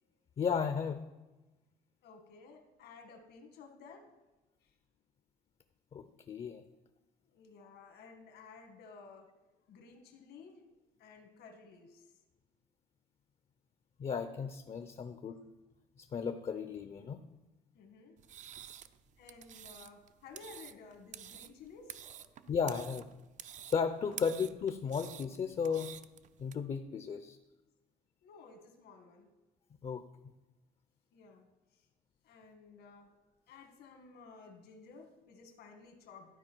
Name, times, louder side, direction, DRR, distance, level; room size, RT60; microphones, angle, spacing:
voice 1, 0.4-1.0 5.9-6.6 14.0-15.4 16.0-17.2 22.5-23.1 23.7-25.9 26.4-27.4 29.8-30.0, left 6 dB, 35° left, 9 dB, 0.5 m, -34 dB
voice 2, 2.0-4.1 4.6-4.7 7.3-9.3 9.7-10.6 11.0-12.2 17.7-18.2 19.2-22.5 24.1-24.2 28.2-29.3 31.1-31.9 32.2-33.1 33.5-36.4, left 4 dB, 75° left, 5 dB, 1.5 m, -55 dB
sound 1, 18.2-26.5, right 10 dB, 45° right, 0.4 m, -50 dB
12.5 x 4.6 x 4.5 m, 1.1 s
cardioid pair, 110°, 17 cm